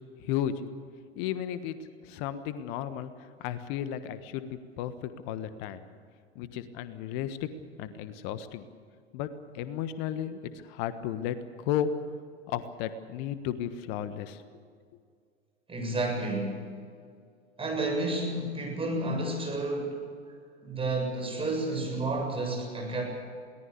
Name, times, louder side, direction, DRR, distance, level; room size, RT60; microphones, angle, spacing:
voice 1, 0.2-0.5 1.2-1.8 2.0-3.1 3.4-5.8 6.3-7.5 7.8-8.7 9.1-9.3 9.5-11.9 12.5-14.4, left 10 dB, 45° left, 12 dB, 1.4 m, -34 dB
voice 2, 15.7-16.6 17.6-20.0 20.6-23.0, right 2 dB, 15° right, 1 dB, 7.5 m, -31 dB
22.0 x 18.5 x 8.4 m, 2.2 s
figure-of-eight pair, 90°, 34 cm